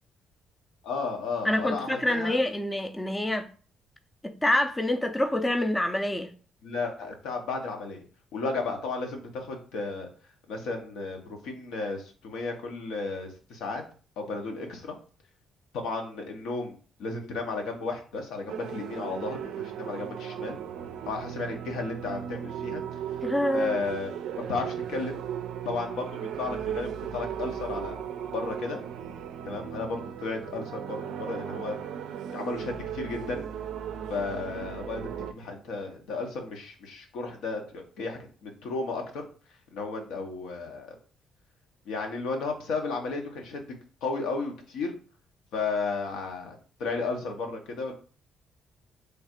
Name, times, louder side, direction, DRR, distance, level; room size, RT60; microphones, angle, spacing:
voice 1, 0.8-2.4 6.6-8.0 8.3-10.1 10.5-13.8 14.2-14.9 15.7-20.6 21.1-23.0 23.5-24.1 24.5-25.2 25.6-28.0 28.3-28.8 29.4-31.8 32.3-33.5 34.1-35.0 35.3-39.3 39.7-40.9 41.9-43.7 44.0-44.9 45.5-47.9, left 3 dB, 90° left, 0.9 m, -33 dB
voice 2, 1.4-3.5 4.2-6.3 23.2-23.8, left 1 dB, 15° left, 0.4 m, -26 dB
sound 1, 18.5-35.3, right 9 dB, 80° right, 0.3 m, -36 dB
3.3 x 2.5 x 4.3 m
cardioid pair, 100°, 0 cm